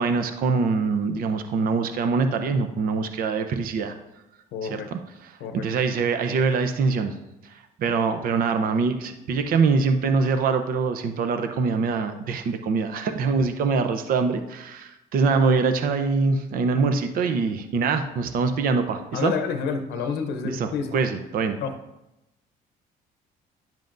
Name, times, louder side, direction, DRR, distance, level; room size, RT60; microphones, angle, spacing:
voice 1, 0.0-3.9 4.6-5.0 5.6-7.1 7.4-7.5 7.8-19.3 20.4-21.6, right 4 dB, 60° right, 8 dB, 0.7 m, -24 dB
voice 2, 4.5-4.9 5.4-5.6 19.1-20.9 21.6-21.7, left 6 dB, 80° left, 6 dB, 0.8 m, -28 dB
10.5 x 7.5 x 2.6 m, 0.92 s
cardioid pair, 110°, 17 cm